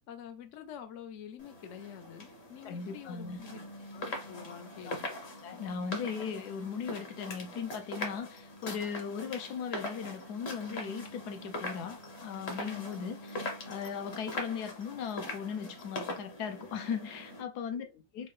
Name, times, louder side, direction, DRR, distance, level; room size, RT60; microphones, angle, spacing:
voice 1, 0.0-3.6 3.9-5.1 17.8-18.0, left 8 dB, 85° left, 0.6 m, -47 dB
sound 1, 1.4-17.4, left 1 dB, 45° left, 0.9 m, -42 dB
voice 2, 2.6-3.4 4.9-5.0 5.4-17.9 18.1-18.3, left 6 dB, 70° left, 1.0 m, -38 dB
4.6 x 2.1 x 3.0 m
omnidirectional pair, 2.1 m